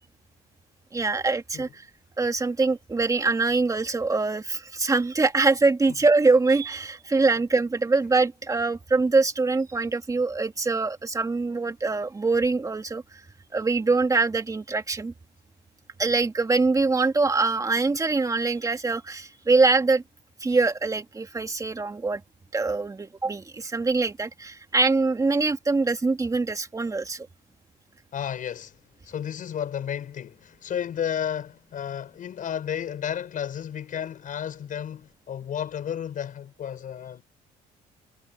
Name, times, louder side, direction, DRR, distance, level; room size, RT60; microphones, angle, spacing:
voice 1, 0.9-1.9 2.2-13.0 13.5-15.1 16.0-20.0 20.4-22.2 22.5-27.3, right 3 dB, 20° right, 2.4 m, -23 dB
voice 2, 28.1-28.8 29.0-37.2, left 9 dB, 50° left, 7.0 m, -32 dB
cardioid pair, 110°, 17 cm